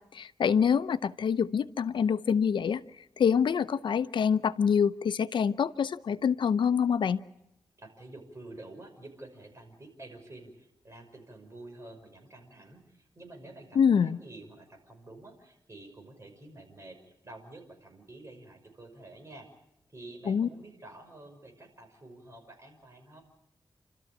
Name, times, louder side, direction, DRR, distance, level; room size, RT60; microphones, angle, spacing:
voice 1, 0.0-2.8 3.2-7.2 13.7-14.2 20.3-20.5, left 7 dB, 80° left, 14 dB, 0.7 m, -26 dB
voice 2, 7.8-17.0 17.2-19.5 19.9-23.2, right 2 dB, 35° right, 3 dB, 5.8 m, -49 dB
29.5 x 13.5 x 8.7 m, 0.85 s
wide cardioid pair, 80°, 8 cm